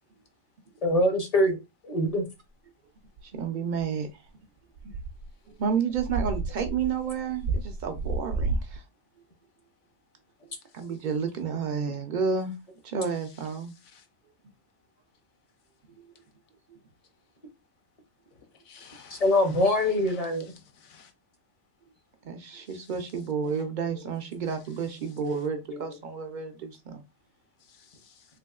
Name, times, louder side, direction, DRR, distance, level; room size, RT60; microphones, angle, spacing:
voice 1, 0.8-1.6 1.8-2.2 19.1-20.5 25.7-25.8, left 1 dB, 40° left, 0.6 m, -23 dB
voice 2, 3.2-4.2 4.8-4.9 5.5-8.8 10.7-12.5 12.8-13.7 16.7-16.8 22.2-27.0, right 6 dB, 60° right, 0.5 m, -31 dB
sound 1, 3.2-3.3 4.8-5.3 5.7-5.8 5.9-8.8, right 3 dB, 80° right, 1.0 m, -31 dB
voice 3, 18.6-19.5 20.1-21.1 27.7-28.3, left 6 dB, 70° left, 1.0 m, -53 dB
3.4 x 2.8 x 2.3 m
omnidirectional pair, 1.3 m